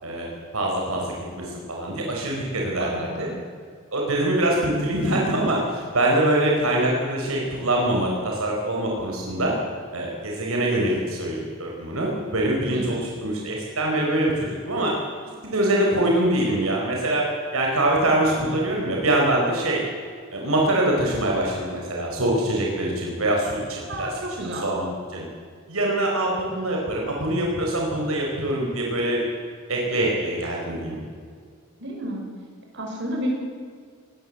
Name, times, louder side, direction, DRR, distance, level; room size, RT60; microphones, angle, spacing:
voice 1, 0.0-3.3 3.9-9.5 9.9-14.9 15.4-19.8 20.3-24.1 24.4-25.2 25.7-29.2 29.7-31.0, right 1 dB, 75° right, -1 dB, 4.7 m, -24 dB
voice 2, 2.7-3.3 12.7-13.0 18.7-18.9 23.9-24.7 31.8-32.2 32.7-33.3, right 1 dB, 55° right, 1 dB, 5.9 m, -31 dB
22.0 x 18.5 x 7.9 m, 2.1 s
head